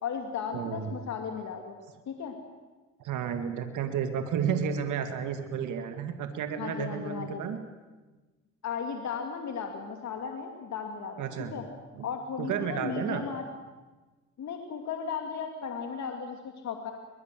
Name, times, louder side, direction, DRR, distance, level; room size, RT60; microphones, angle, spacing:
voice 1, 0.0-1.7 2.1-2.3 6.6-7.4 8.6-11.7 12.0-13.4 14.4-16.9, left 6 dB, 65° left, 4 dB, 2.6 m, -35 dB
voice 2, 0.5-1.0 3.0-7.6 11.2-11.6 11.9-12.1 12.4-13.2, right 7 dB, 80° right, 7 dB, 2.2 m, -32 dB
22.0 x 22.0 x 7.7 m, 1.2 s
cardioid pair, 90°, 30 cm